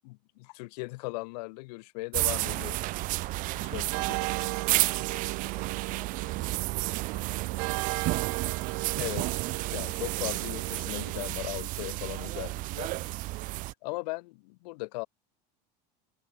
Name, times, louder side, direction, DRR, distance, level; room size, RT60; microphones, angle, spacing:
voice 1, 0.0-2.8 3.7-3.9 9.0-12.9 13.8-15.1, left 25 dB, 75° left, 0.6 m, -38 dB
sound 1, 2.1-13.7, right 20 dB, 40° right, 0.4 m, -32 dB
voice 2, 3.4-8.4 9.8-10.3, left 4 dB, 15° left, 5.8 m, -59 dB
sound 2, 3.9-11.3, right 39 dB, 65° right, 1.3 m, -36 dB
supercardioid pair, 135°, 21 cm